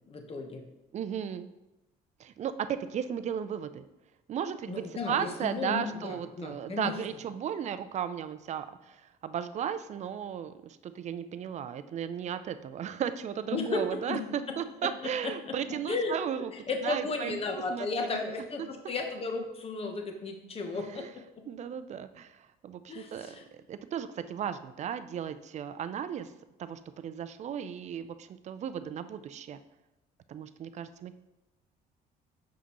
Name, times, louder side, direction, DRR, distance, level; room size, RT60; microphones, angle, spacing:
voice 1, 0.1-0.6 4.7-6.9 13.5-14.2 15.2-15.3 15.9-16.1 16.5-21.0 22.9-23.5, left 3 dB, 35° left, 3 dB, 0.9 m, -34 dB
voice 2, 0.9-1.5 2.2-3.8 4.3-16.5 16.8-17.4 17.7-18.2 20.9-21.1 21.5-26.3 26.6-29.6 30.3-31.1, right 8 dB, 45° right, 12 dB, 0.4 m, -35 dB
6.8 x 5.0 x 3.0 m, 0.98 s
cardioid pair, 110°, 17 cm